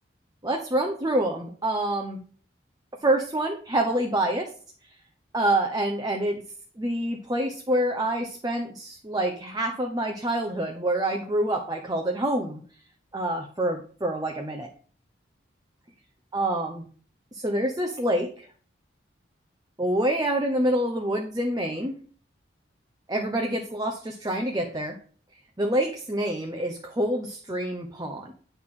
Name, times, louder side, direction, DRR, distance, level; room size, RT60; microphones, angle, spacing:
voice 1, 0.4-2.2 3.0-4.5 5.3-6.4 6.8-12.6 13.1-14.7 16.3-16.9 17.3-18.5 19.8-22.0 23.1-25.0 25.6-28.3, right 1 dB, 20° right, 2 dB, 0.8 m, -27 dB
9.3 x 6.1 x 3.8 m, 0.42 s
head